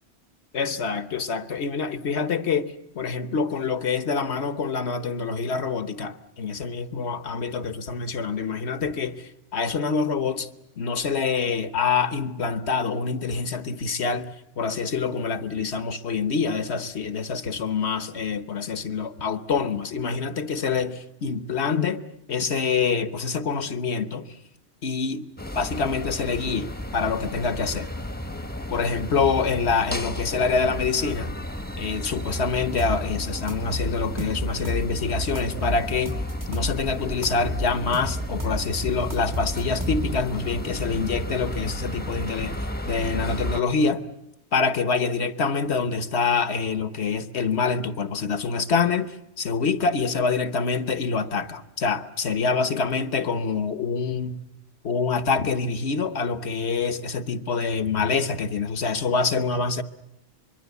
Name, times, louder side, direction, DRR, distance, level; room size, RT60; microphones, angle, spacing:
voice 1, 0.5-10.5 10.8-14.3 14.6-22.0 22.3-24.3 24.8-25.3 25.5-27.9 28.7-31.3 31.8-36.2 36.5-42.5 42.9-44.0 44.5-54.4 54.8-59.8, left 5 dB, 65° left, 1.4 m, -26 dB
sound 1, 25.4-43.6, equal, 10° left, 1.1 m, -33 dB
sound 2, 32.8-33.0 33.5-34.9 35.3-36.8 37.2-38.7 39.1-40.3, equal, 15° right, 1.0 m, -31 dB
24.5 x 23.0 x 8.2 m
omnidirectional pair, 1.2 m